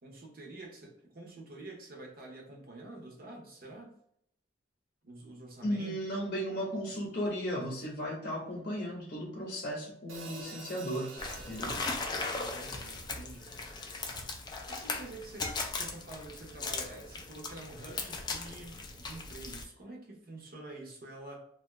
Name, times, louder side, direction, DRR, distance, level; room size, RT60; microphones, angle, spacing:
voice 1, 0.0-4.0 5.0-6.0 12.3-13.5 14.7-21.4, right 2 dB, 50° right, 1 dB, 0.7 m, -47 dB
voice 2, 5.6-11.1 11.5-11.8, equal, 45° left, -2 dB, 0.7 m, -35 dB
Hi-hat, 10.1-14.4, right 3 dB, 90° right, 0.5 m, -49 dB
sound 1, 11.2-19.6, left 3 dB, 20° left, 0.3 m, -38 dB
2.6 x 2.3 x 3.1 m, 0.71 s
head